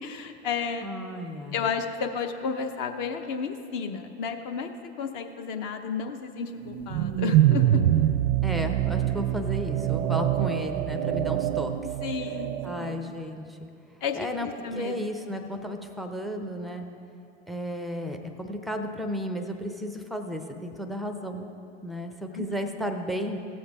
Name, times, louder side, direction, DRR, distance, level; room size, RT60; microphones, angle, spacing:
voice 1, 0.0-0.9 1.5-4.7 5.0-7.8 12.0-13.2 14.0-15.0 22.3-22.5, left 6 dB, 50° left, 7 dB, 0.8 m, -32 dB
voice 2, 0.8-1.7 8.4-11.7 12.6-13.6 14.2-14.5 14.7-16.8 17.5-21.5 21.8-23.4, equal, ahead, 5 dB, 0.4 m, -33 dB
sound 1, 6.7-13.0, right 12 dB, 65° right, 0.5 m, -25 dB
15.5 x 7.2 x 3.5 m, 2.6 s
hypercardioid pair, 110°, 36 cm